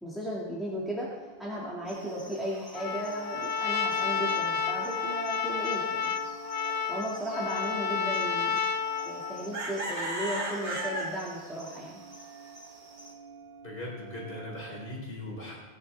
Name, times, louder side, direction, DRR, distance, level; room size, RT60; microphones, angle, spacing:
voice 1, 0.0-6.1 6.9-8.6 9.0-12.0, equal, ahead, -7 dB, 2.3 m, -35 dB
sound 1, 0.7-14.9, right 6 dB, 90° right, 1.4 m, -51 dB
sound 2, 1.9-13.1, right 1 dB, 65° right, 3.9 m, -41 dB
Trumpet, 2.7-9.5, left 6 dB, 35° left, 0.6 m, -31 dB
voice 2, 13.6-15.6, left 1 dB, 55° left, -4 dB, 3.9 m, -39 dB
19.5 x 10.0 x 3.6 m, 1.2 s
omnidirectional pair, 1.1 m